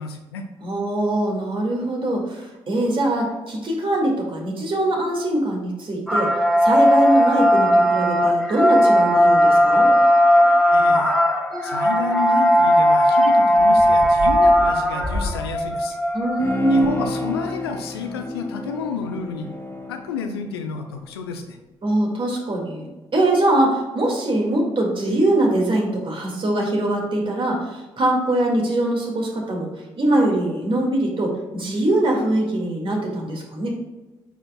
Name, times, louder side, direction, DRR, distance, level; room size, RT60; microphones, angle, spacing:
voice 1, 0.0-0.4 10.7-11.1 11.6-16.0 16.7-19.5 19.9-21.6, left 5 dB, 85° left, 5 dB, 0.5 m, -30 dB
voice 2, 0.6-6.3 6.6-9.9 16.1-16.9 21.8-22.9 23.1-29.7 30.0-33.7, right 1 dB, 45° right, 0 dB, 2.1 m, -22 dB
sound 1, 6.1-17.5, equal, ahead, 1.8 m, -17 dB
Bowed string instrument, 16.4-21.0 21.4-21.5, left 2 dB, 20° left, 1.8 m, -32 dB
8.7 x 5.0 x 2.3 m, 1.1 s
hypercardioid pair, 40°, 13 cm